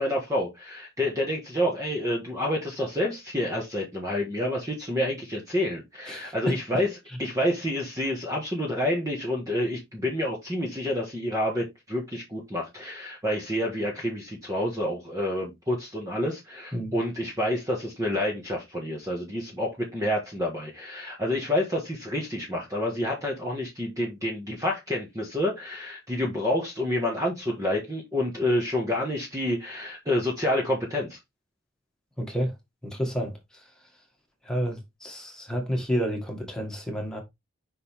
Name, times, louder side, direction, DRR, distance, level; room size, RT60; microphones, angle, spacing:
voice 1, 0.0-6.9 7.2-31.2, left 1 dB, 15° right, 1.5 m, -28 dB
voice 2, 6.1-6.8 16.7-16.9 32.2-32.5 32.8-33.3 34.5-37.2, equal, 5° left, 1.9 m, -30 dB
5.7 x 5.4 x 3.4 m
head